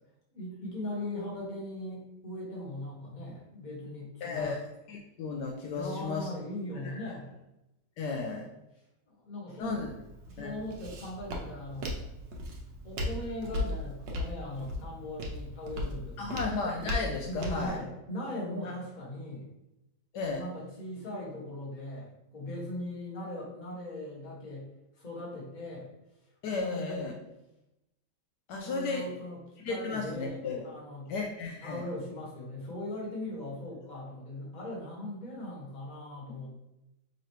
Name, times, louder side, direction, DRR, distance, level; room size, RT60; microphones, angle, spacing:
voice 1, 0.3-4.6 5.7-7.4 9.1-9.8 10.3-11.9 12.8-16.4 17.2-19.5 20.2-24.7 24.9-25.9 26.5-27.1 28.6-31.1 31.6-36.5, left 1 dB, 30° left, -5 dB, 1.3 m, -39 dB
voice 2, 4.2-4.6 4.9-6.3 6.8-7.1 8.0-8.5 9.6-9.9 10.4-10.5 16.2-17.8 20.1-20.4 26.4-27.1 28.5-29.0 29.6-30.6 31.1-31.8 36.3-36.4, left 4 dB, 75° left, 1 dB, 1.1 m, -34 dB
Walk footsteps, 9.6-17.7, left 1 dB, 90° right, 1.5 m, -37 dB
5.5 x 3.0 x 3.0 m, 0.90 s
omnidirectional pair, 1.9 m